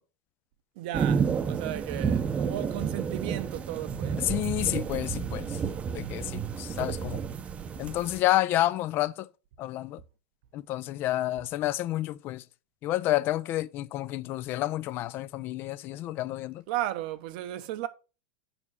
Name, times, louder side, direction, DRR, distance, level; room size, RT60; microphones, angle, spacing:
voice 1, 0.8-4.2 16.7-17.9, right 13 dB, 60° right, 0.9 m, -35 dB
sound 1, 0.9-8.2, right 6 dB, 25° right, 0.8 m, -31 dB
voice 2, 4.2-5.6 5.9-7.2 7.8-9.3 9.6-10.0 10.5-12.4 12.8-16.6, left 15 dB, 40° left, 0.5 m, -29 dB
7.1 x 5.4 x 4.8 m
hypercardioid pair, 115°, 5 cm